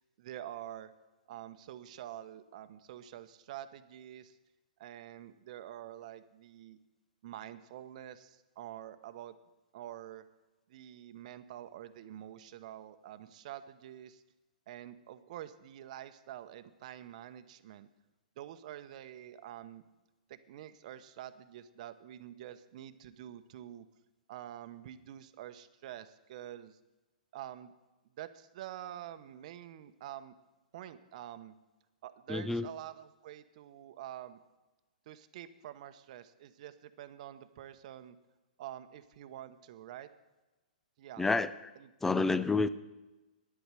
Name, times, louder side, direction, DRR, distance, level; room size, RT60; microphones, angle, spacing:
voice 1, 0.2-0.9 1.3-4.4 4.8-6.8 7.2-9.3 9.7-10.2 10.7-14.2 14.7-17.9 18.4-19.8 20.3-23.9 24.3-26.8 27.3-27.7 28.2-30.4 30.7-31.5 32.0-34.4 35.1-38.2 38.6-40.1 41.0-41.3 41.8-41.9, right 12 dB, 55° right, 11 dB, 0.9 m, -47 dB
voice 2, 32.3-32.7 41.2-41.5 42.0-42.7, left 3 dB, 5° left, 15 dB, 0.5 m, -28 dB
10.0 x 8.3 x 9.0 m, 1.1 s
hypercardioid pair, 135°, 5 cm